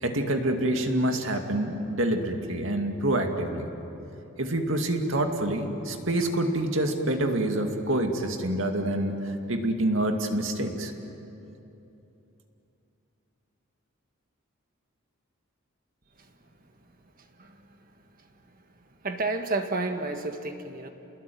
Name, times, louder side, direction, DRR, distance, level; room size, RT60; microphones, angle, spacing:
voice 1, 0.0-3.7 4.4-10.9, right 1 dB, 65° right, 4 dB, 2.3 m, -27 dB
voice 2, 17.2-17.9 18.2-18.3 19.0-20.9, right 3 dB, 40° right, 5 dB, 1.6 m, -32 dB
29.0 x 20.5 x 9.4 m, 2.9 s
head